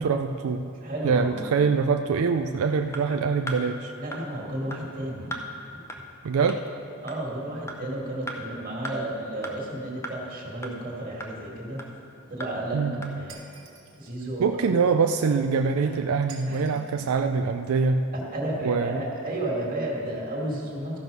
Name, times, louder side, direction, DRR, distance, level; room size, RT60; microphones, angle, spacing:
voice 1, 0.0-0.7 1.0-3.9 6.2-6.6 12.7-13.2 14.4-18.1 18.6-19.0, right 5 dB, 85° right, 6 dB, 0.4 m, -24 dB
voice 2, 0.8-1.5 4.0-5.3 7.0-11.8 12.3-12.8 13.1-13.5 14.0-14.6 15.8-16.0 16.5-16.6 18.1-21.0, right 1 dB, 40° right, -3 dB, 2.1 m, -32 dB
sound 1, 2.9-3.0 3.5-3.6 4.1-4.2 4.7-4.8 5.3-5.4 5.9-6.0 6.5-6.6 7.1-7.2 7.7-7.8 8.3-8.4 8.8-9.0 9.4-9.5 10.0-10.1 10.6-10.7 11.2-11.3 11.8-11.9 12.4-12.5 13.0-13.1, equal, 15° left, 0.7 m, -35 dB
Shatter, 13.3-14.1 16.3-17.0, right 6 dB, 65° right, 1.5 m, -48 dB
14.0 x 6.1 x 5.4 m, 2.7 s
head